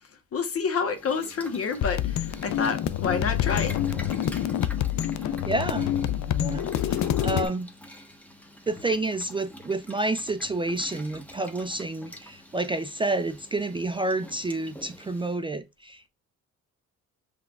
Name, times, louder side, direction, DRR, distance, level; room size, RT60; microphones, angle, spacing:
voice 1, 0.3-3.8, left 5 dB, 50° left, 1.0 m, -28 dB
Boiling, 0.8-15.4, equal, 5° left, 1.0 m, -47 dB
sound 1, 1.8-7.4, left 11 dB, 65° left, 0.5 m, -27 dB
voice 2, 5.4-5.9 6.4-7.7 8.7-16.1, right 2 dB, 15° right, 0.4 m, -29 dB
5.8 x 3.4 x 2.3 m
cardioid pair, 90°, 30 cm